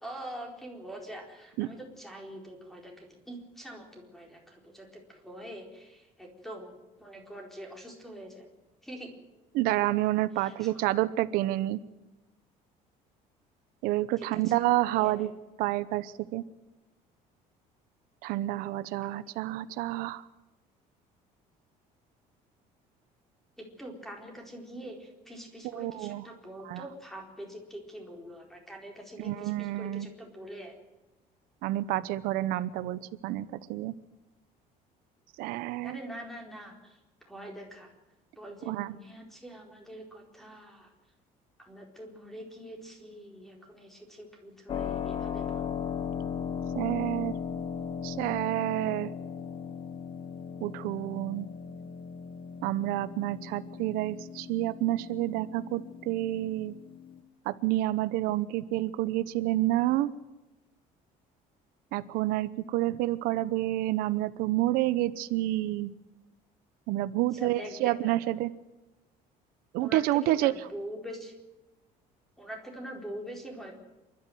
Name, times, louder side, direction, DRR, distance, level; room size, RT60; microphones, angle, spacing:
voice 1, 0.0-6.7 7.0-8.5 8.8-9.1 10.4-10.8 14.2-14.5 15.0-15.2 23.6-30.8 35.8-37.9 38.4-40.9 41.6-45.7 67.3-68.2 69.8-71.3 72.4-73.8, right 1 dB, ahead, 2 dB, 4.3 m, -44 dB
voice 2, 9.5-11.8 13.8-15.3 15.6-16.4 18.2-20.2 25.7-26.2 26.6-26.8 29.2-30.1 31.6-33.9 35.4-36.0 38.7-38.9 46.7-47.3 48.0-49.1 50.6-51.5 52.6-56.7 57.5-60.1 61.9-65.9 66.9-68.5 69.7-70.5, right 15 dB, 80° right, 14 dB, 0.9 m, -29 dB
Keyboard (musical), 44.7-57.2, left 7 dB, 35° left, 1.2 m, -37 dB
27.5 x 12.5 x 9.4 m, 1.1 s
cardioid pair, 160°, 15 cm